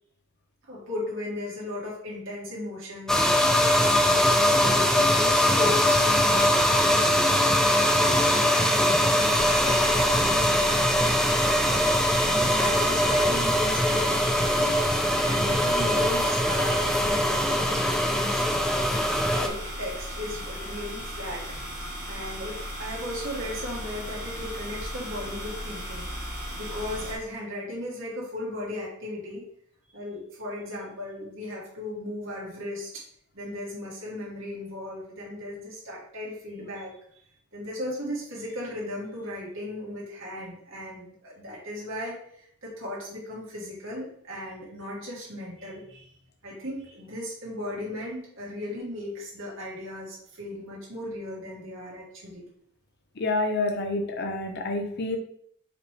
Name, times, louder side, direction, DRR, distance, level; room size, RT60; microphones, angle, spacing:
voice 1, 0.7-11.6 12.0-14.9 15.2-19.0 19.3-21.4 22.1-26.1 26.5-29.4 29.9-33.0 33.3-36.9 37.5-46.1 46.4-52.5, left 1 dB, 65° right, -5 dB, 2.0 m, -36 dB
sound 1, 3.1-19.5, equal, 5° left, 0.4 m, -22 dB
sound 2, 9.3-27.1, equal, 20° right, 1.6 m, -36 dB
voice 2, 53.2-55.2, left 2 dB, 50° left, 4 dB, 0.7 m, -28 dB
5.0 x 3.2 x 3.3 m, 0.67 s
head